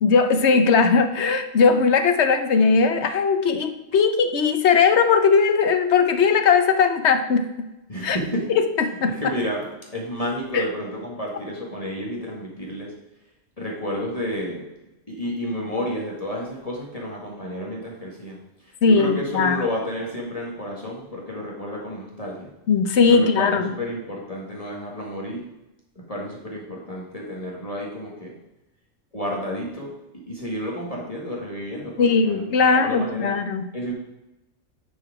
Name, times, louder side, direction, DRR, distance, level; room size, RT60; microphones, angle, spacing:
voice 1, 0.0-7.4 8.0-8.2 8.6-9.1 10.5-10.7 18.8-19.6 22.7-23.7 32.0-33.7, left 5 dB, 60° left, 8 dB, 1.1 m, -19 dB
voice 2, 7.9-8.5 8.9-12.9 13.6-14.7 15.1-18.4 18.9-22.5 23.0-25.4 26.0-28.3 29.1-29.9 30.3-33.3 33.7-33.9, equal, 30° left, -3 dB, 1.8 m, -31 dB
9.5 x 4.8 x 4.9 m, 0.94 s
omnidirectional pair, 1.3 m